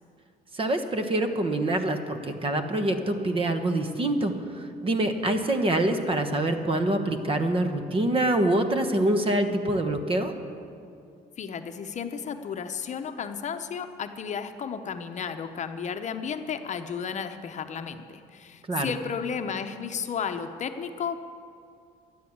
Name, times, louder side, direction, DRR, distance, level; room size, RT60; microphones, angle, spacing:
voice 1, 0.5-10.3 18.7-18.9, right 1 dB, 30° right, 7 dB, 1.3 m, -25 dB
voice 2, 11.4-21.2, left 6 dB, 45° left, 7 dB, 0.8 m, -33 dB
12.5 x 9.5 x 8.6 m, 2.4 s
cardioid pair, 110°, 17 cm